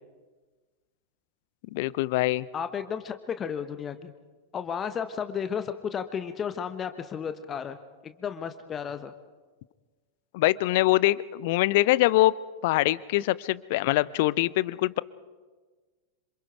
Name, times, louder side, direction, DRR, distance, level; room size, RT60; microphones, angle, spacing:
voice 1, 1.7-2.5 10.3-12.4 12.6-15.0, left 18 dB, 50° left, 20 dB, 0.6 m, -23 dB
voice 2, 2.5-4.1 4.5-7.8 8.0-9.1, left 7 dB, 25° left, 9 dB, 1.1 m, -33 dB
27.0 x 27.0 x 4.6 m, 1.3 s
figure-of-eight pair, 90°, 0 cm